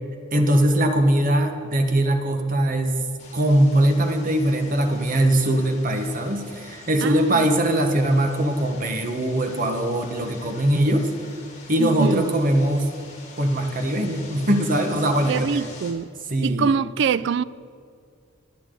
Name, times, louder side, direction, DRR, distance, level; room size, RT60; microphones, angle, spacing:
voice 1, 0.3-3.0 3.3-11.1 11.7-12.9 13.4-15.6 16.3-16.7, right 1 dB, 40° right, 1.2 m, -21 dB
sound 1, 3.2-15.9, left 3 dB, 35° left, 2.7 m, -45 dB
voice 2, 7.0-7.5 11.8-12.3 15.3-16.1 16.4-17.4, right 6 dB, 55° right, 0.3 m, -24 dB
23.5 x 8.4 x 3.8 m
head